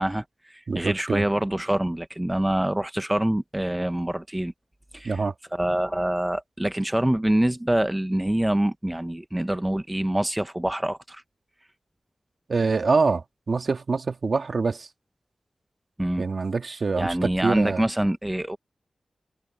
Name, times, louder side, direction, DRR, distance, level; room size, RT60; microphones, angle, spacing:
voice 1, 0.0-4.5 4.9-5.2 5.5-11.2 16.0-16.2 17.0-18.6, right 1 dB, 10° right, 0.8 m, -25 dB
voice 2, 0.7-1.2 5.0-5.3 12.5-14.9 16.2-17.9, right 4 dB, 60° right, 1.9 m, -25 dB
wide cardioid pair, 80°, 0 cm